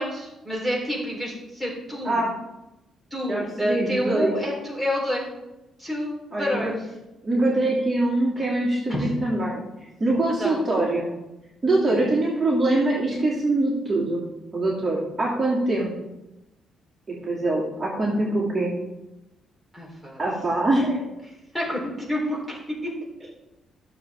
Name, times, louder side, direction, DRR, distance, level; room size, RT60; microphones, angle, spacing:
voice 1, 0.0-2.2 3.1-5.3 5.8-6.8 8.4-8.5 8.9-9.1 10.4-10.6 11.9-12.0 19.7-20.2 21.5-22.9, left 1 dB, 5° left, -3 dB, 4.0 m, -28 dB
voice 2, 3.3-4.3 6.3-6.7 7.2-9.6 10.0-11.1 11.6-15.9 17.1-18.7 20.2-21.0, right 2 dB, 30° right, -5 dB, 2.7 m, -23 dB
14.0 x 7.0 x 3.7 m, 0.96 s
cardioid pair, 90°, 0 cm